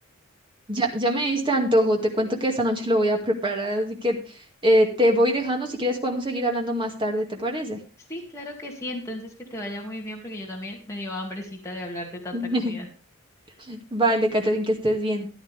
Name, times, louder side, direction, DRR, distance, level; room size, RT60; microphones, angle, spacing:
voice 1, 0.7-4.2 4.6-7.8 12.3-12.7 13.6-15.3, equal, 25° right, 2 dB, 2.2 m, -23 dB
voice 2, 8.1-12.9, left 1 dB, 15° left, -2 dB, 2.3 m, -35 dB
14.0 x 10.5 x 3.5 m, 0.35 s
head